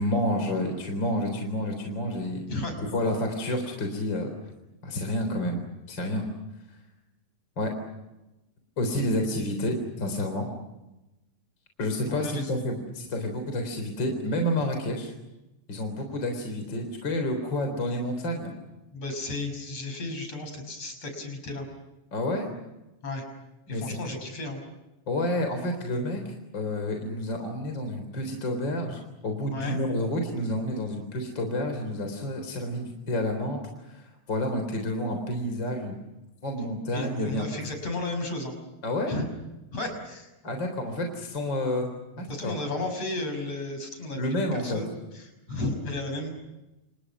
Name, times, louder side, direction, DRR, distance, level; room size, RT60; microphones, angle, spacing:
voice 1, 0.0-2.4 2.9-4.3 4.8-6.3 7.6-7.7 8.8-10.5 11.8-15.1 15.7-18.5 22.1-22.5 23.7-24.0 25.1-36.0 36.4-37.5 38.8-39.1 40.4-41.9 42.2-42.6 44.2-44.8, left 1 dB, 40° left, 4 dB, 4.4 m, -29 dB
voice 2, 12.1-12.5 18.9-21.7 23.0-23.3 23.7-24.6 29.5-29.8 36.9-38.6 39.1-39.3 39.7-40.3 42.3-45.2 45.5-46.3, left 2 dB, 55° left, 6 dB, 7.1 m, -33 dB
30.0 x 28.5 x 6.2 m, 1.0 s
omnidirectional pair, 3.3 m